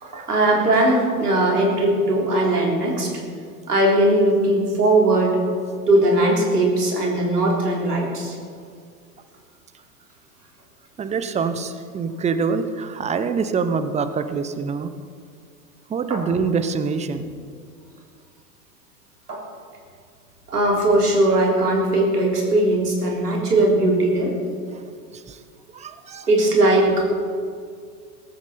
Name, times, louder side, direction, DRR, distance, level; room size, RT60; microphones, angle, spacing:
voice 1, 0.1-3.2 3.7-5.4 5.9-8.4 16.1-16.2 19.3-19.4 20.5-24.4 26.3-27.1, right 1 dB, 85° right, -1 dB, 3.8 m, -19 dB
voice 2, 11.0-14.9 15.9-17.3 24.7-24.8 25.1-25.4 25.7-26.3, right 5 dB, 15° right, 11 dB, 0.8 m, -25 dB
17.5 x 15.0 x 4.3 m, 2.2 s
figure-of-eight pair, 90°, 46 cm